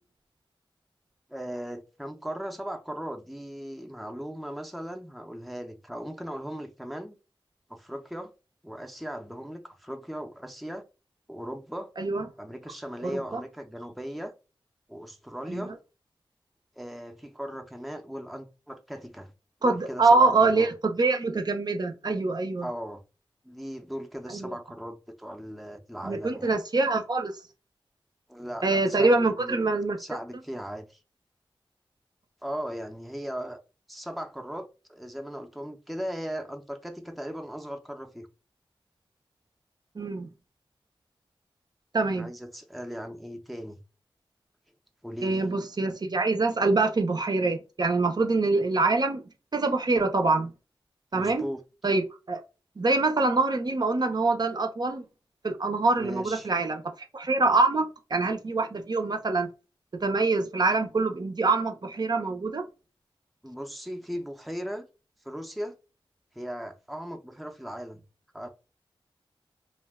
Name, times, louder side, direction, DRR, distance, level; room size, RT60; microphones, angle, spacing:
voice 1, 1.3-7.2 7.7-8.3 8.6-10.8 11.3-11.9 12.4-14.3 14.9-15.7 16.8-19.3 19.6-20.7 22.6-23.0 23.4-26.5 28.3-29.7 30.0-31.0 32.4-33.6 33.9-38.3 42.2-43.8 45.0-45.4 51.1-51.6 56.0-56.5 63.4-64.9 65.2-65.7 66.3-68.0 68.3-68.5, equal, ahead, 0.5 m, -38 dB
voice 2, 13.0-13.4 15.5-15.7 19.6-22.7 24.3-24.5 26.0-27.3 28.6-30.0 40.0-40.3 41.9-42.3 45.2-49.2 49.5-50.5 51.1-51.4 51.8-52.4 52.8-55.0 55.4-59.5 59.9-62.6, right 3 dB, 50° right, 0.5 m, -25 dB
2.5 x 2.2 x 3.4 m
wide cardioid pair, 65°, 9 cm